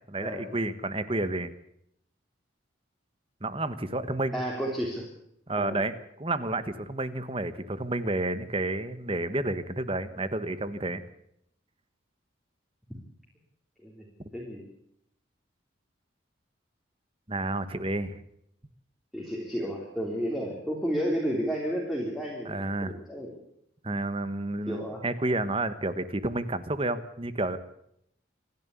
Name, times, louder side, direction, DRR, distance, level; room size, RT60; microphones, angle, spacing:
voice 1, 0.1-1.5 3.4-4.4 5.5-5.9 6.2-11.0 17.3-18.2 22.4-23.0 23.8-27.6, right 2 dB, 25° right, 13 dB, 1.3 m, -30 dB
voice 2, 4.3-5.1 5.6-5.8 13.8-14.0 14.3-14.7 19.1-23.3 24.7-25.0, equal, ahead, -2 dB, 3.5 m, -32 dB
27.5 x 11.5 x 8.3 m, 0.74 s
head